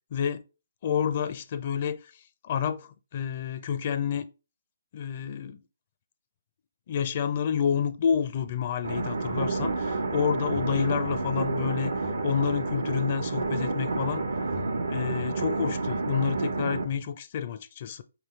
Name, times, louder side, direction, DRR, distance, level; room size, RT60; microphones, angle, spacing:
voice 1, 0.1-0.4 0.8-2.1 2.4-4.3 4.9-5.6 6.9-11.9 12.2-14.2 14.9-18.0, left 7 dB, 40° left, 0.5 m, -29 dB
sound 1, 8.8-16.8, right 3 dB, 75° right, 1.0 m, -29 dB
5.0 x 3.3 x 3.1 m
hypercardioid pair, 145°, 0 cm